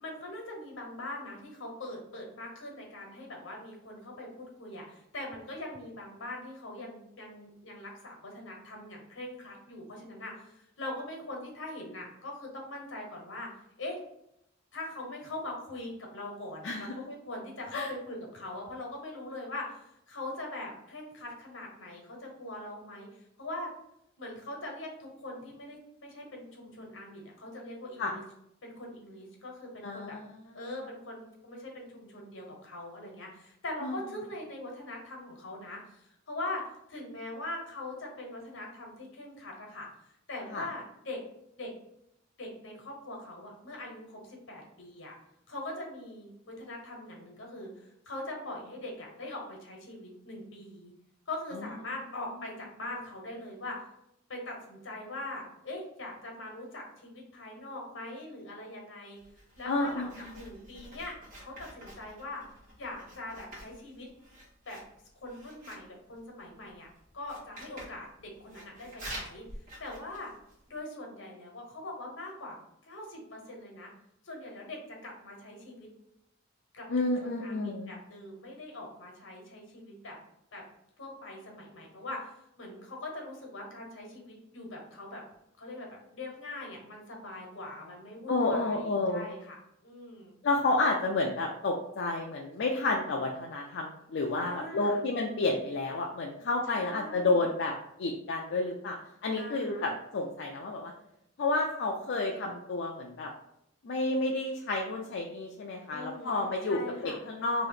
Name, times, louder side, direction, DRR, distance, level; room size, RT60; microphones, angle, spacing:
voice 1, 0.0-13.5 13.8-14.0 14.7-23.7 24.2-28.2 28.6-30.2 30.5-39.9 40.3-41.2 41.6-41.7 42.4-45.2 45.5-50.9 51.3-53.8 54.3-59.2 59.6-62.4 62.8-64.1 64.6-64.8 65.2-69.4 69.8-70.3 70.7-72.5 72.8-73.9 74.2-75.9 76.7-80.2 80.5-80.6 81.0-85.2 85.6-90.3 94.4-95.0 96.7-97.5 99.4-99.9 105.9-107.2, left 2 dB, 80° left, 0 dB, 1.2 m, -42 dB
voice 2, 16.6-16.9 17.7-17.9 28.0-28.1 29.8-30.4 30.7-30.8 33.8-33.9 40.5-40.7 51.5-51.7 59.7-60.3 76.9-77.9 88.3-89.3 90.4-97.7 98.0-99.0 99.2-100.9 101.4-103.3 103.8-107.7, left 2 dB, 60° left, 0 dB, 0.4 m, -30 dB
Writing, 59.2-70.8, right 1 dB, 50° right, 1.4 m, -49 dB
3.0 x 2.7 x 4.0 m, 0.79 s
head